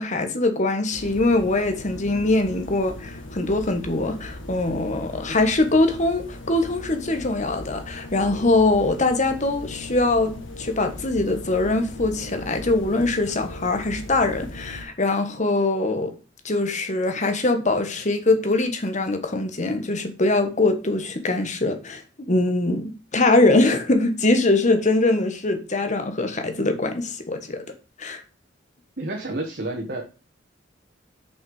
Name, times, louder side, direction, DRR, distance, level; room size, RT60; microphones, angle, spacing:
voice 1, 0.0-16.1 16.4-27.6 28.0-28.2, left 2 dB, 40° left, 1.4 m, -22 dB
sound 1, 0.9-14.8, left 1 dB, 90° left, 1.8 m, -38 dB
voice 2, 29.0-30.0, right 2 dB, 55° right, 1.5 m, -29 dB
6.5 x 5.7 x 5.5 m
head